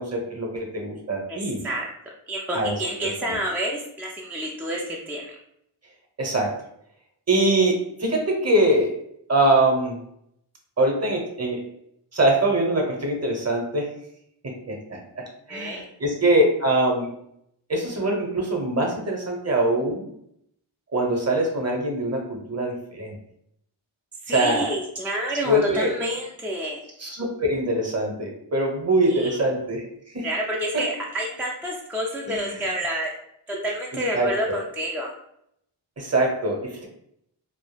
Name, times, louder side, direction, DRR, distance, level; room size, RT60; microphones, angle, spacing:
voice 1, 0.0-1.6 2.5-2.7 3.2-3.4 6.2-6.5 7.3-8.9 9.3-10.0 10.8-11.6 12.1-13.9 14.4-17.1 17.7-20.1 20.9-23.2 24.3-24.7 25.3-25.9 27.0-29.8 30.1-30.2 32.3-32.6 33.5-33.6 34.1-34.3 36.0-36.8, right 1 dB, 30° right, 0 dB, 0.8 m, -23 dB
voice 2, 1.3-1.9 2.3-5.4 15.5-15.8 24.2-26.8 29.0-29.4 30.2-33.1 33.5-35.1, right 1 dB, 5° right, -2 dB, 0.4 m, -29 dB
2.2 x 2.0 x 3.2 m, 0.73 s
cardioid pair, 50°, 49 cm